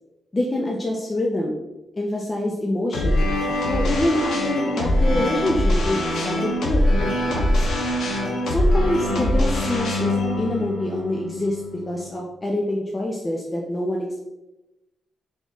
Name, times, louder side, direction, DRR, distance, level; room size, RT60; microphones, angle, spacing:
voice 1, 0.3-1.6 2.0-3.3 3.7-7.7 8.5-14.3, left 1 dB, 25° left, -1 dB, 0.5 m, -26 dB
sound 1, 2.9-12.1, left 1 dB, 85° left, 0.9 m, -23 dB
3.9 x 3.5 x 3.0 m, 0.98 s
cardioid pair, 105°, 0 cm